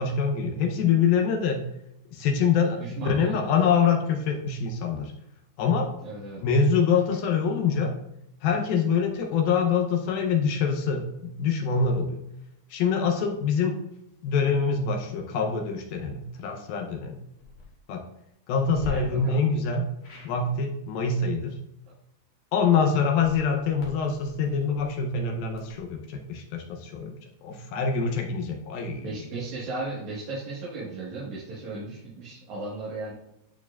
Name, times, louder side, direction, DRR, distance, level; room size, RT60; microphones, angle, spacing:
voice 1, 0.0-1.7 2.1-5.1 5.6-5.9 6.4-7.9 8.4-12.2 12.7-13.8 14.2-17.2 17.9-18.0 18.5-19.8 20.2-21.6 22.5-27.1 27.4-29.1, left 5 dB, 80° left, 2 dB, 2.4 m, -25 dB
voice 2, 2.8-3.4 6.0-6.4 18.8-19.4 29.0-33.1, right 3 dB, 55° right, -8 dB, 2.5 m, -36 dB
sound 1, 17.3-17.7 18.7-18.9 20.0-20.3 23.1-25.9, left 1 dB, 55° left, 2.6 m, -45 dB
11.0 x 4.6 x 2.4 m, 0.81 s
omnidirectional pair, 4.6 m